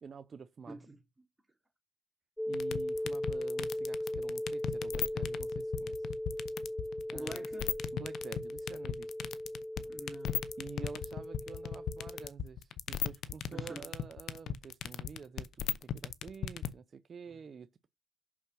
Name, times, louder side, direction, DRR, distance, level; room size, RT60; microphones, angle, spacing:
voice 1, 0.0-0.8 2.5-6.1 7.1-7.5 7.9-9.1 10.6-17.9, right 6 dB, 45° right, 0.6 m, -49 dB
voice 2, 0.7-1.3 7.1-7.7 9.8-10.5 13.5-13.9 17.3-17.4, right 2 dB, 10° right, 3.5 m, -47 dB
sound 1, 2.4-12.3, left 1 dB, 5° left, 0.5 m, -38 dB
sound 2, 2.5-16.7, left 9 dB, 75° left, 0.8 m, -36 dB
6.0 x 5.8 x 6.2 m
cardioid pair, 90°, 0 cm